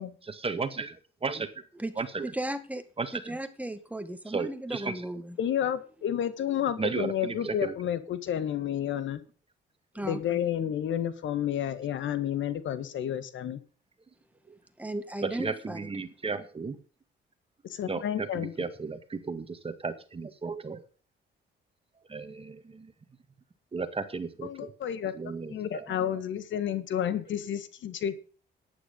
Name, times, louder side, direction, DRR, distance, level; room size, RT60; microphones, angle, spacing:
voice 1, 0.2-1.6 2.0-2.3 3.0-3.4 4.3-5.1 6.8-7.7 14.5-14.6 15.2-16.8 17.9-20.8 22.1-22.9 23.7-24.7 25.1-26.1 27.1-27.2, right 4 dB, 30° right, 1.9 m, -35 dB
voice 2, 2.2-2.9 3.1-5.4 9.9-10.4 14.8-15.9, right 1 dB, 5° right, 1.9 m, -35 dB
voice 3, 5.4-9.2 10.0-13.6 17.6-18.5 24.4-25.1 25.5-28.2, left 10 dB, 70° left, 1.6 m, -31 dB
11.5 x 10.0 x 5.4 m
cardioid pair, 90°, 20 cm